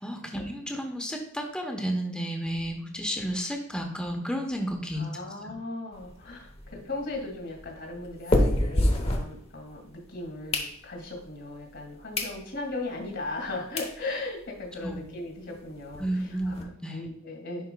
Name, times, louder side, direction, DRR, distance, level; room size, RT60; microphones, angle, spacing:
voice 1, 0.0-5.0 14.8-15.0 16.0-17.0, equal, 5° left, 2 dB, 1.0 m, -32 dB
voice 2, 4.9-16.6 16.9-17.7, left 2 dB, 65° left, 1 dB, 1.9 m, -37 dB
sound 1, 5.9-9.9 10.3-11.2 11.7-11.8 12.1-12.4 12.8-12.9 13.5-13.6 13.8-14.0 14.4-14.5 14.7-14.8 15.1-15.2 15.5-16.6, left 1 dB, 30° left, 0.9 m, -29 dB
10.5 x 4.6 x 2.3 m, 0.74 s
head